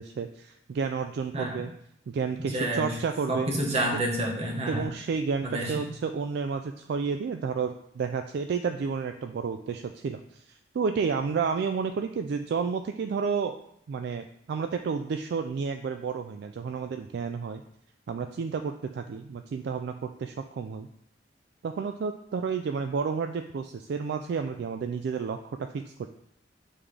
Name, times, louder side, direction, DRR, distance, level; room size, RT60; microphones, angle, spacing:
voice 1, 0.0-1.7 2.1-3.5 3.9-4.0 4.7-13.6 13.9-17.6 18.1-20.9 21.6-26.1, right 5 dB, 60° right, 7 dB, 0.3 m, -31 dB
voice 2, 2.4-3.0 3.3-4.9 5.4-5.8, right 1 dB, 35° right, -1 dB, 1.3 m, -29 dB
8.8 x 3.6 x 3.3 m, 0.72 s
head